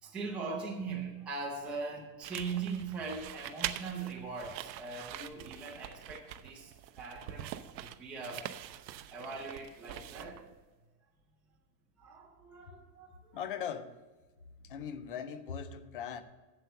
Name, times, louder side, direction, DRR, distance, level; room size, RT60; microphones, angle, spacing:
voice 1, 0.0-8.5 9.1-10.4 12.0-13.4, right 4 dB, ahead, 0.6 m, -41 dB
sound 1, 2.2-10.6, right 12 dB, 85° right, 0.8 m, -44 dB
voice 2, 13.3-14.0 14.6-16.2, left 8 dB, 35° left, 0.4 m, -39 dB
8.3 x 7.8 x 6.6 m
supercardioid pair, 180°, 49 cm